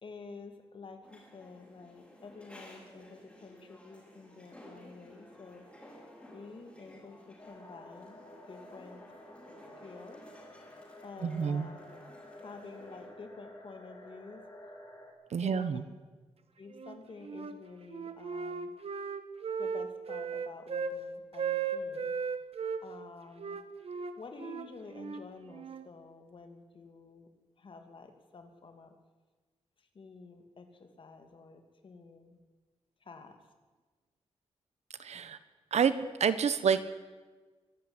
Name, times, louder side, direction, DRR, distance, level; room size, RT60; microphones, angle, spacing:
voice 1, 0.0-5.6 6.3-8.2 8.5-9.0 9.8-10.3 11.0-11.9 12.4-14.4 15.4-15.8 16.6-18.7 19.6-22.1 22.8-23.6 24.2-27.3 27.6-28.9 29.8-32.4 33.0-33.4, left 4 dB, 50° left, 6 dB, 2.8 m, -50 dB
sound 1, 1.0-13.1, equal, 10° left, 6.2 m, -55 dB
sound 2, 7.4-15.1, left 1 dB, 35° left, 7.3 m, -51 dB
voice 2, 11.2-11.7 15.3-15.8 35.0-35.4 35.7-35.9 36.2-36.8, right 7 dB, 85° right, 13 dB, 1.3 m, -28 dB
Wind instrument woodwind instrument, 16.7-17.6 17.9-21.0 21.3-22.8 23.4-25.9, right 6 dB, 65° right, 1.4 m, -36 dB
23.5 x 12.0 x 9.9 m, 1.3 s
wide cardioid pair, 150°, 11 cm